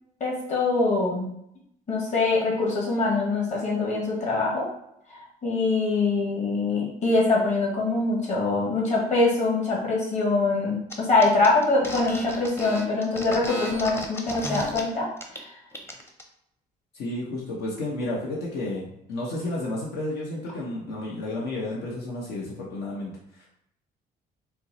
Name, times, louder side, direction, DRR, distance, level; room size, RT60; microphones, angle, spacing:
voice 1, 0.2-1.3 1.9-4.7 5.1-15.1 15.4-15.5, left 3 dB, 45° left, -3 dB, 1.5 m, -24 dB
sound 1, 10.9-11.0 11.2-14.8 15.2-15.4 15.7-16.2, left 1 dB, 15° left, 0.7 m, -34 dB
voice 2, 16.9-23.1, left 2 dB, 80° left, -4 dB, 0.9 m, -31 dB
4.4 x 2.0 x 3.9 m, 0.76 s
cardioid pair, 110°, 17 cm